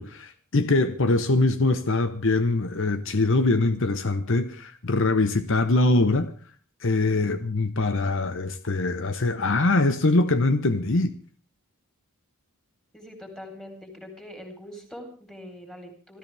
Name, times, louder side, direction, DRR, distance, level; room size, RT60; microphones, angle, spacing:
voice 1, 0.0-6.3 6.8-11.1, left 2 dB, 55° left, 1.0 m, -23 dB
voice 2, 12.9-16.2, left 1 dB, 5° left, 3.9 m, -43 dB
26.5 x 13.5 x 3.4 m
head